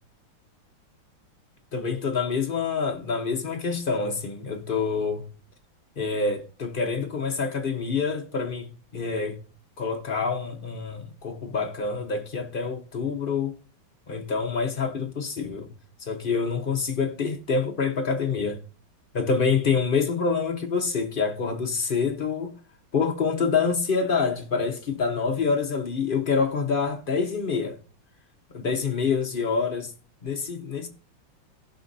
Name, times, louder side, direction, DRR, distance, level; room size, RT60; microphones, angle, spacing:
voice 1, 1.7-5.3 6.0-8.7 8.9-9.4 9.8-13.5 14.1-15.7 16.0-18.6 19.1-22.5 22.9-27.8 28.5-29.9 30.2-30.9, left 5 dB, 40° left, 0.8 m, -26 dB
15.5 x 5.6 x 2.6 m
omnidirectional pair, 2.1 m